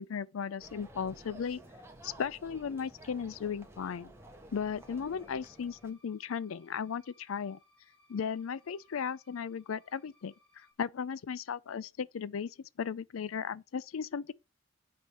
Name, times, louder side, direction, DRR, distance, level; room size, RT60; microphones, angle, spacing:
voice 1, 0.0-1.6 2.0-4.1 4.5-7.6 8.1-14.3, left 6 dB, 80° left, 0.4 m, -36 dB
sound 1, 0.6-5.9, right 1 dB, 10° right, 1.2 m, -53 dB
sound 2, 4.6-10.7, left 2 dB, 5° left, 2.8 m, -67 dB
9.1 x 3.7 x 5.6 m
head